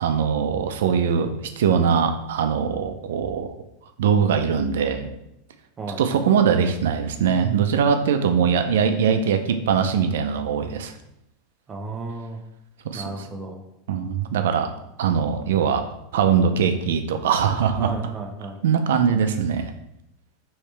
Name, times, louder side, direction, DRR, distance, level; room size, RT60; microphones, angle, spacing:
voice 1, 0.0-3.5 4.0-5.1 6.0-10.9 12.8-13.0 13.9-14.7 15.0-15.9 16.1-17.9 18.6-19.7, right 7 dB, 90° right, 7 dB, 0.5 m, -21 dB
voice 2, 5.8-6.2 11.7-12.4 12.9-13.6 17.8-18.6, right 3 dB, 20° right, 2 dB, 0.7 m, -34 dB
4.8 x 3.1 x 3.3 m, 0.83 s
supercardioid pair, 150°, 0 cm